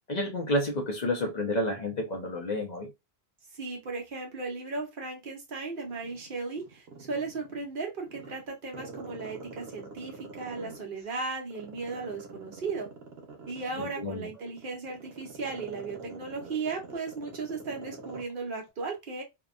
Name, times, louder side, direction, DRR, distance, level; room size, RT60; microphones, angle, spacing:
voice 1, 0.1-2.9 13.8-14.3, left 1 dB, 50° left, 0.6 m, -30 dB
voice 2, 3.5-12.9 13.5-19.2, right 4 dB, 60° right, 0.9 m, -36 dB
Growling, 5.9-7.6 8.1-11.1 11.5-18.3 18.6-18.7, right 4 dB, 80° right, 1.0 m, -44 dB
2.7 x 2.2 x 2.4 m
omnidirectional pair, 1.0 m